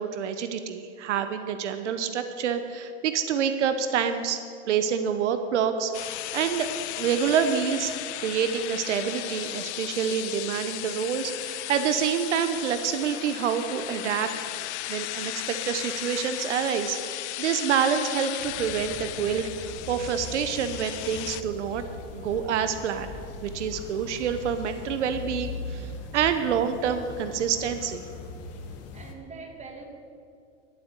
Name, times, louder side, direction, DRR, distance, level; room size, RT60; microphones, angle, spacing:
voice 1, 0.0-4.4 4.7-6.7 7.0-7.9 8.2-14.3 14.9-21.8 22.1-23.1 23.4-28.0, right 7 dB, 90° right, 9 dB, 0.9 m, -27 dB
sound 1, 5.9-21.4, left 16 dB, 75° left, 0.6 m, -35 dB
sound 2, 18.4-29.1, left 4 dB, 45° left, 1.6 m, -40 dB
voice 2, 23.5-24.0 25.6-26.0 28.4-29.9, right 4 dB, 20° right, 2 dB, 2.4 m, -48 dB
11.5 x 8.5 x 8.2 m, 2.4 s
hypercardioid pair, 110°, 34 cm